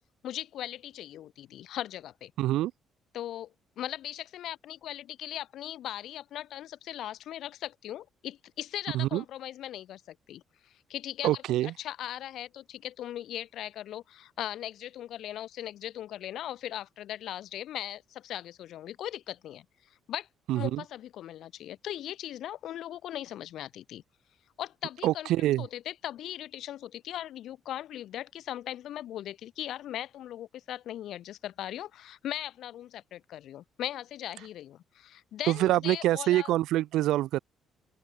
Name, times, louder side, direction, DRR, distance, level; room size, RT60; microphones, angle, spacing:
voice 1, 0.2-2.3 3.1-3.5 3.8-11.4 11.8-19.6 20.1-20.3 20.5-24.0 24.6-25.3 25.6-36.5, left 12 dB, 65° left, 4.8 m, -39 dB
voice 2, 2.4-2.7 8.9-9.2 11.2-11.7 20.5-20.8 25.0-25.7 35.5-37.4, right 15 dB, 85° right, 0.5 m, -26 dB
open air
cardioid pair, 160°, 0 cm